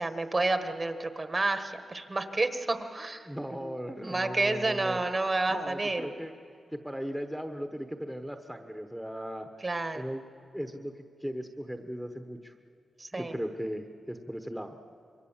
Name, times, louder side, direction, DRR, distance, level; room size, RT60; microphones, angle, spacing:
voice 1, 0.0-3.3 3.6-3.7 4.0-6.1 9.6-10.0 13.0-13.3, right 2 dB, 30° right, 8 dB, 1.4 m, -30 dB
voice 2, 3.2-6.3 6.7-9.5 9.9-10.2 10.5-10.9 11.2-12.5 13.1-14.8, equal, 5° right, 5 dB, 1.1 m, -37 dB
26.5 x 22.5 x 7.3 m, 2.3 s
wide cardioid pair, 110°, 0 cm